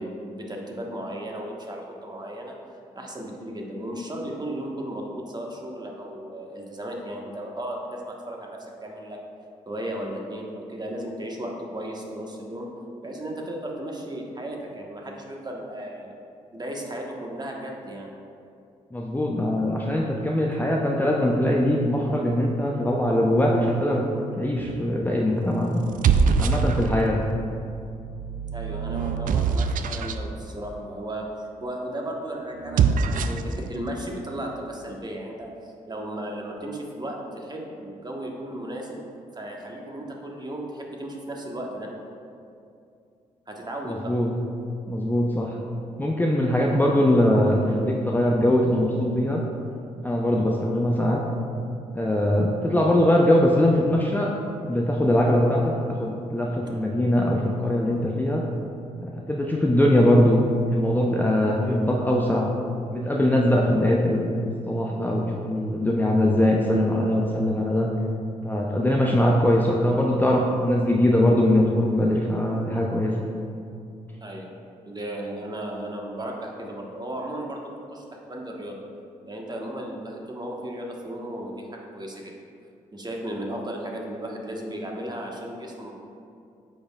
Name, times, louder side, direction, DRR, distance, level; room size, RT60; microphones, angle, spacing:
voice 1, 0.0-2.5 2.9-9.2 9.7-12.7 13.0-16.1 16.5-18.1 28.5-32.9 33.1-39.0 39.3-41.9 43.5-44.1 56.6-56.7 74.2-74.6 74.8-77.6 77.9-78.8 79.3-82.4 82.9-85.9, right 1 dB, 25° right, -1 dB, 1.3 m, -35 dB
voice 2, 18.9-24.0 24.4-25.8 26.4-27.2 43.9-44.3 44.9-45.6 46.0-49.4 50.0-51.2 51.9-54.3 54.7-58.4 59.0-62.5 62.9-67.9 68.4-73.1, left 1 dB, 10° left, -2 dB, 0.6 m, -22 dB
sound 1, 24.6-25.0 25.8-27.2 27.9-30.2 32.6-33.5, right 6 dB, 50° right, 0.4 m, -24 dB
8.7 x 5.2 x 2.4 m, 2.5 s
hypercardioid pair, 40°, 18 cm